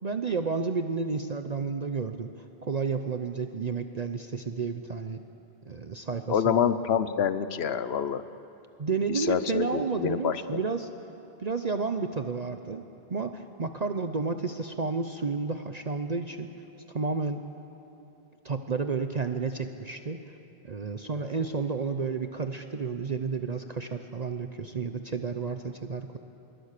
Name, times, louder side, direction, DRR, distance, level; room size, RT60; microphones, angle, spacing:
voice 1, 0.0-5.2 5.7-6.6 8.8-10.9 11.4-16.5 16.9-17.4 18.4-20.2 20.6-26.2, right 4 dB, 45° right, 7 dB, 0.8 m, -31 dB
voice 2, 6.3-8.2 9.1-10.4, left 8 dB, 80° left, 13 dB, 1.1 m, -26 dB
26.5 x 22.0 x 6.7 m, 2.9 s
omnidirectional pair, 1.1 m